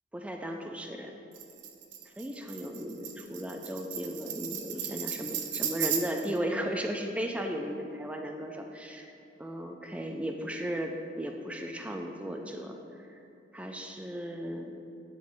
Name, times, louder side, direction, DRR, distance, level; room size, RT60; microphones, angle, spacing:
voice 1, 0.1-1.2 2.1-9.1 9.4-13.2 13.5-14.7, equal, 5° right, 3 dB, 0.3 m, -36 dB
Tambourine, 1.3-6.4, right 8 dB, 70° right, 0.5 m, -36 dB
9.3 x 3.7 x 3.1 m, 2.7 s
head